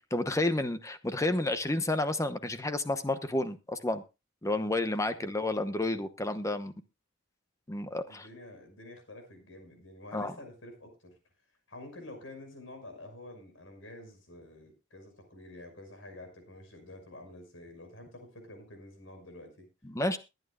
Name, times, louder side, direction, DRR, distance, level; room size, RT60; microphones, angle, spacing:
voice 1, 0.1-4.0 4.4-6.7 7.7-8.3 10.1-10.3 19.8-20.2, left 2 dB, 15° left, 10 dB, 0.9 m, -30 dB
voice 2, 4.8-5.2 8.1-11.2 11.7-19.7, left 1 dB, 80° left, 5 dB, 5.9 m, -49 dB
22.0 x 9.2 x 2.4 m, 0.27 s
head